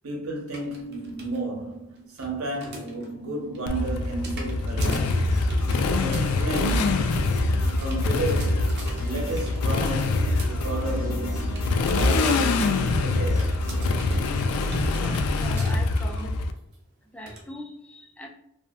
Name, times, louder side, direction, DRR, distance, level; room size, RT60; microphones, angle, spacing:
voice 1, 0.0-5.3 5.9-7.0 7.8-8.7 9.0-11.5 11.9-13.6, right 2 dB, 85° right, 0.8 m, -33 dB
sound 1, 0.5-1.4 1.7-3.1 3.4-12.2 12.4-13.0 13.4-16.4 16.7-16.8 17.3-17.4, right 2 dB, 50° right, 0.6 m, -42 dB
Motorcycle, 3.7-16.5, left 3 dB, 90° left, 0.3 m, -24 dB
sound 2, 4.9-14.9, left 1 dB, 70° left, 0.7 m, -35 dB
voice 2, 14.9-16.4 17.1-18.3, equal, 5° left, 0.3 m, -40 dB
2.6 x 2.4 x 2.4 m
head